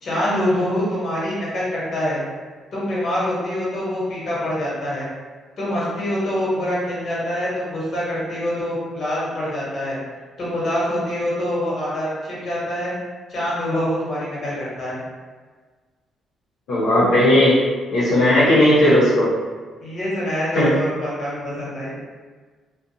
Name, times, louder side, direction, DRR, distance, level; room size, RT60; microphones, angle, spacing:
voice 1, 0.0-2.2 2.7-5.1 5.6-10.0 10.4-12.9 13.3-15.0 19.8-22.0, left 1 dB, 50° left, -7 dB, 1.2 m, -25 dB
voice 2, 16.7-17.6 17.9-19.3 20.5-20.7, left 1 dB, 75° left, -10 dB, 0.7 m, -16 dB
2.4 x 2.2 x 2.7 m, 1.4 s
cardioid pair, 90°, 0 cm